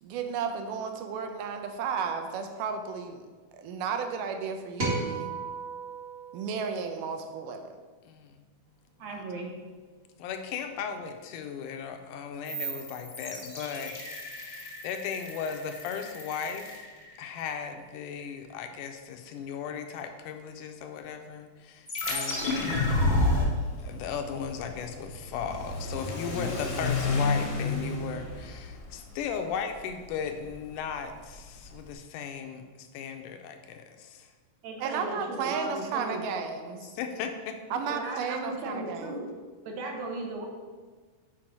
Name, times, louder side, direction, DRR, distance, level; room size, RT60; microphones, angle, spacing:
voice 1, 0.0-3.2 3.5-5.3 6.3-7.7 34.8-36.8 37.7-39.2, right 6 dB, 90° right, 6 dB, 2.3 m, -33 dB
sound 1, 4.8-7.3, right 3 dB, 40° right, 0.8 m, -34 dB
voice 2, 8.0-8.4 9.1-9.2 10.2-16.8 17.2-23.0 23.8-34.3 36.8-37.8, left 7 dB, 90° left, 6 dB, 2.2 m, -36 dB
voice 3, 9.0-9.5 34.6-36.3 37.9-39.3 39.6-40.5, right 2 dB, 70° right, 1 dB, 2.0 m, -36 dB
sound 2, 12.4-17.5 21.9-23.4, left 1 dB, 40° left, 0.9 m, -31 dB
Car / Accelerating revving vroom, 22.5-31.9, left 3 dB, 65° left, 1.0 m, -34 dB
7.4 x 4.7 x 4.6 m, 1.4 s
omnidirectional pair, 3.7 m